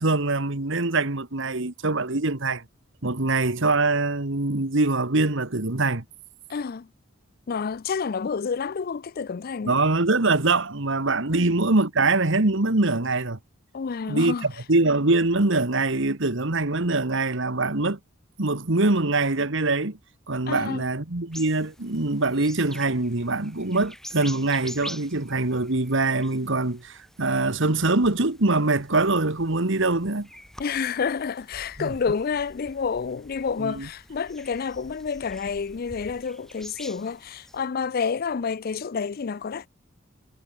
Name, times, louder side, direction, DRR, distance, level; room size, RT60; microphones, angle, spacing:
voice 1, 0.0-2.6 3.0-6.0 9.6-13.4 14.1-18.0 18.4-20.0 20.3-30.3 31.8-31.9 33.6-33.9, right 2 dB, 60° right, 1.7 m, -23 dB
voice 2, 6.5-6.9 7.5-9.8 11.3-11.5 13.7-14.5 20.5-20.8 30.6-39.7, left 5 dB, 45° left, 0.4 m, -29 dB
sound 1, 21.3-37.6, equal, ahead, 4.4 m, -46 dB
head